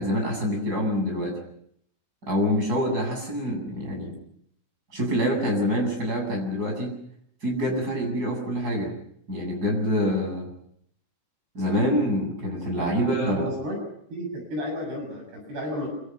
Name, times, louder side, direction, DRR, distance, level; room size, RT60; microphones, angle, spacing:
voice 1, 0.0-1.4 2.3-4.1 4.9-6.9 7.4-8.9 9.3-10.5 11.5-13.5, equal, 20° right, 2 dB, 8.2 m, -26 dB
voice 2, 12.7-13.8 14.1-15.9, equal, 55° right, 2 dB, 9.2 m, -33 dB
26.5 x 26.5 x 6.0 m, 0.69 s
omnidirectional pair, 5.6 m